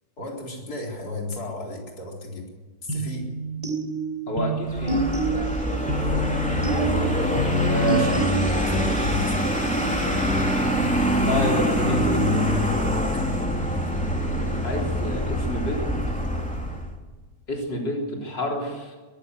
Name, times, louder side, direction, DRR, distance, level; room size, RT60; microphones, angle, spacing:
voice 1, 0.2-2.5 2.8-3.3 7.8-8.7 9.0-9.5 11.9-12.2 12.5-13.0, left 2 dB, 55° left, -1 dB, 4.5 m, -34 dB
sound 1, 2.9-8.9, right 1 dB, 20° right, 4.3 m, -27 dB
voice 2, 4.3-5.0 7.7-8.1 8.6-9.1 11.3-12.1 14.6-15.9 17.5-19.0, equal, 75° left, -1 dB, 4.4 m, -29 dB
Vehicle, 4.7-16.9, equal, 5° left, 3.4 m, -24 dB
23.0 x 15.0 x 8.2 m, 1.3 s
omnidirectional pair, 2.0 m